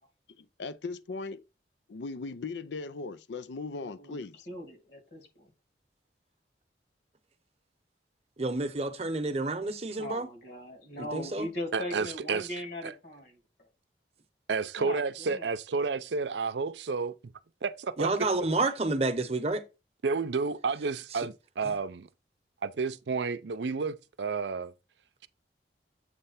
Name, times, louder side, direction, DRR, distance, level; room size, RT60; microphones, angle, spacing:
voice 1, 0.4-1.4 1.9-4.5, left 3 dB, 85° left, 0.5 m, -38 dB
voice 2, 3.8-4.2 4.5-5.5 10.0-13.4 14.8-15.4, left 1 dB, 60° left, 2.3 m, -39 dB
voice 3, 8.4-10.3 11.0-11.5 18.0-19.6, right 2 dB, 35° right, 0.8 m, -29 dB
voice 4, 11.7-12.5 12.8-12.9 14.5-17.1 17.6-18.1 20.0-22.1 22.6-24.7, right 4 dB, 80° right, 0.5 m, -31 dB
8.0 x 3.3 x 5.7 m
head